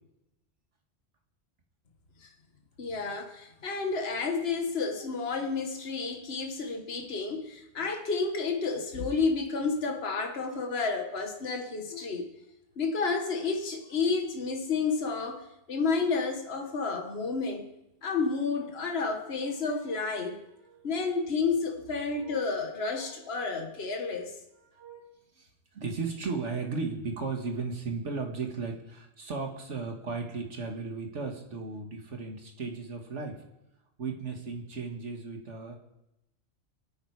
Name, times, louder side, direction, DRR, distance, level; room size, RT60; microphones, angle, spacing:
voice 1, 2.8-12.3 12.8-17.7 18.0-20.4 20.8-24.3, left 4 dB, 55° left, 3 dB, 1.7 m, -31 dB
voice 2, 19.5-20.2 20.6-21.4 22.0-22.5 22.9-24.3 24.7-33.4 34.0-35.8, right 4 dB, 70° right, 3 dB, 2.1 m, -37 dB
22.5 x 9.3 x 4.8 m, 0.90 s
omnidirectional pair, 1.3 m